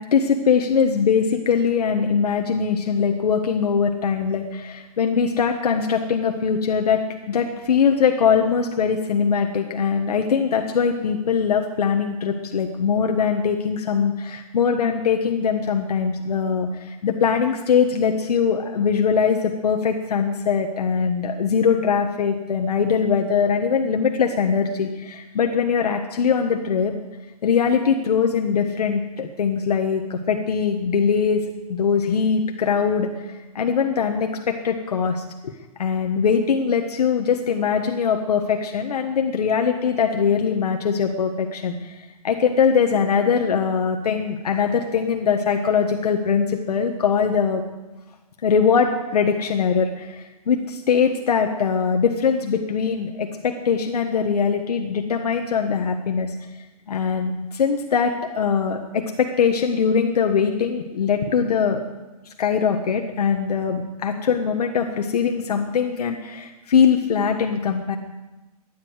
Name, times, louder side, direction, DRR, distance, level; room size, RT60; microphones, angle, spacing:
voice 1, 0.0-26.9 27.4-31.4 31.7-35.5 35.8-47.6 48.4-56.3 56.9-61.8 62.4-68.0, left 6 dB, 80° left, 4 dB, 1.5 m, -21 dB
14.5 x 10.5 x 8.1 m, 1.1 s
hypercardioid pair, 175°, 19 cm